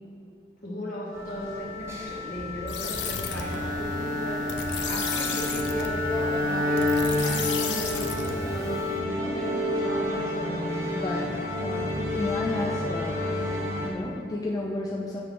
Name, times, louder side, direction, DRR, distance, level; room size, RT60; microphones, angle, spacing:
voice 1, 0.6-10.6, equal, 50° left, -6 dB, 1.8 m, -36 dB
sound 1, 1.1-13.9, left 2 dB, 15° right, 1.0 m, -31 dB
sound 2, 2.7-9.0, left 5 dB, 75° left, 0.7 m, -34 dB
Bowed string instrument, 3.3-8.3, left 1 dB, 50° right, 0.7 m, -30 dB
voice 2, 10.9-11.3 11.6-13.2 13.8-15.2, left 1 dB, 20° left, -2 dB, 0.4 m, -32 dB
8.9 x 3.2 x 6.1 m, 2.6 s
head